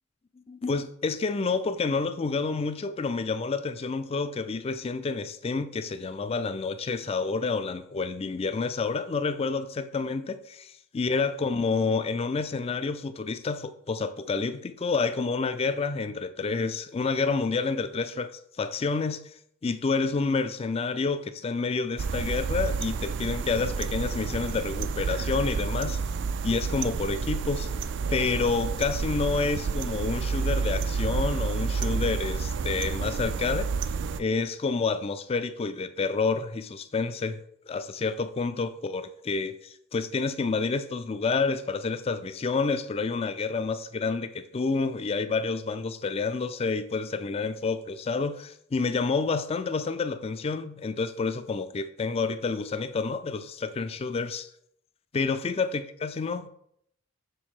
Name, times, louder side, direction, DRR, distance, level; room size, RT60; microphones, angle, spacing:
voice 1, 0.5-18.3 18.6-19.2 19.6-26.0 26.4-27.7 28.1-33.7 34.2-37.4 37.7-54.5 55.1-56.5, left 4 dB, 30° left, 0.3 m, -29 dB
sound 1, 22.0-34.2, right 5 dB, 55° right, 0.3 m, -30 dB
6.1 x 3.6 x 4.8 m
head